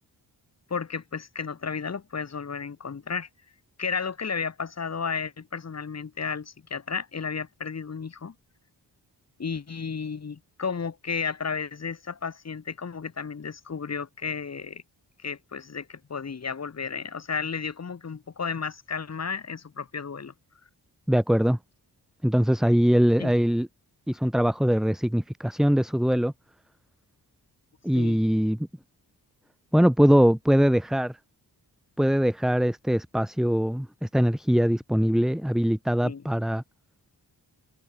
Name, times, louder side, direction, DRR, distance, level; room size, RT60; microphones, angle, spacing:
voice 1, 0.7-3.3 3.8-8.3 9.4-14.8 15.2-20.3 23.2-23.3 27.9-28.2 36.0-36.2, left 5 dB, 40° left, 1.5 m, -33 dB
voice 2, 21.1-21.6 22.2-23.7 24.1-26.3 27.8-28.6 29.7-31.1 32.0-36.6, equal, ahead, 0.7 m, -22 dB
cardioid pair, 80°, 40 cm